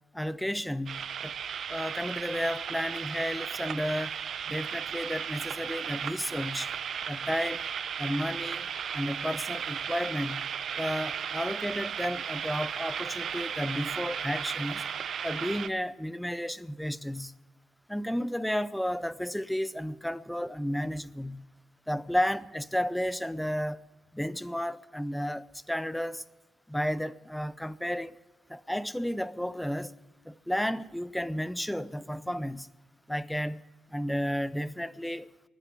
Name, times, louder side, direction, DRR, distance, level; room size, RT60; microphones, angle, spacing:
voice 1, 0.1-1.3 1.7-4.2 4.5-6.7 7.1-7.6 8.0-8.7 8.9-10.5 10.8-14.8 15.2-17.3 17.9-21.4 21.9-23.8 24.1-26.2 26.7-28.2 28.5-30.0 30.2-32.7 33.1-33.6 33.9-35.3, equal, 5° left, 0.5 m, -32 dB
sound 1, 0.9-15.7, right 8 dB, 60° right, 0.7 m, -35 dB
14.5 x 10.0 x 7.4 m
cardioid pair, 90°, 0 cm